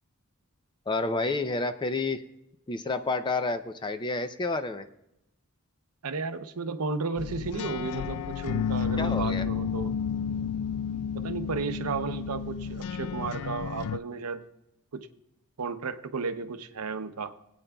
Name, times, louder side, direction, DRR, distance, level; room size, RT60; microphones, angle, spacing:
voice 1, 0.9-2.2 2.7-4.9 9.0-9.5, left 3 dB, 20° left, 10 dB, 0.5 m, -29 dB
voice 2, 6.0-9.9 11.1-14.4 14.9-15.1 15.6-17.4, right 4 dB, 90° right, 9 dB, 0.7 m, -33 dB
sound 1, 7.2-14.0, left 7 dB, 85° left, 0.3 m, -31 dB
20.5 x 8.8 x 2.3 m, 0.86 s
head